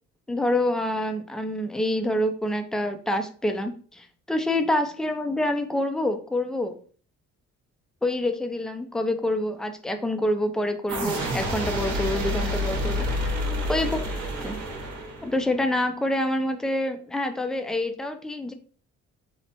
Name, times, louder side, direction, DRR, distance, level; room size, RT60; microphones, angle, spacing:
voice 1, 0.3-6.8 8.0-13.3 13.7-14.0 14.4-14.6 15.2-18.5, left 1 dB, ahead, 6 dB, 0.3 m, -27 dB
sound 1, 10.9-15.6, equal, 75° right, 0.9 m, -28 dB
3.0 x 2.1 x 2.8 m, 0.43 s
cardioid pair, 90°, 30 cm